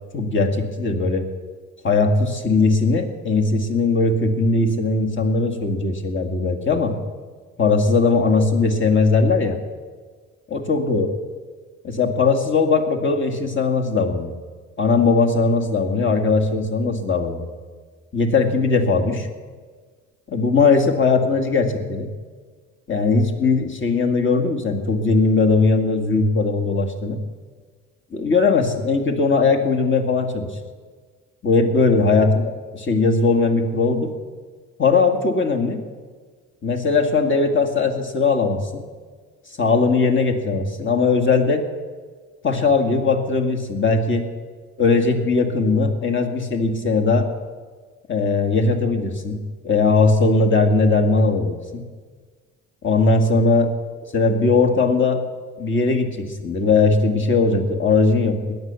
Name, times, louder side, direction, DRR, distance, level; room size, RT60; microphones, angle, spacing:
voice 1, 0.1-1.3 1.8-6.9 7.6-9.6 10.5-11.1 11.8-14.3 14.8-17.5 18.1-19.3 20.3-22.1 22.9-27.2 28.1-30.5 31.4-32.4 32.7-34.1 34.8-35.8 36.6-38.8 39.6-41.6 42.4-44.3 44.8-47.3 48.1-49.4 49.6-51.8 52.8-53.7 54.1-55.2 55.6-58.6, left 4 dB, 40° left, 3 dB, 2.2 m, -19 dB
17.5 x 11.0 x 7.1 m, 1.5 s
cardioid pair, 90°, 30 cm